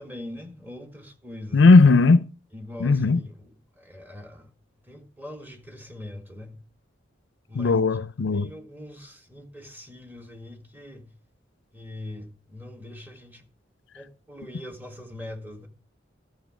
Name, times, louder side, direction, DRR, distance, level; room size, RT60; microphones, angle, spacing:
voice 1, 0.0-1.7 2.5-4.5 4.8-6.6 7.5-8.0 8.3-11.1 11.7-13.4 13.9-15.7, left 1 dB, 10° right, 1.7 m, -41 dB
voice 2, 1.5-2.3 2.8-3.2 7.6-8.5, left 3 dB, 70° left, 0.5 m, -17 dB
12.5 x 6.6 x 5.0 m
head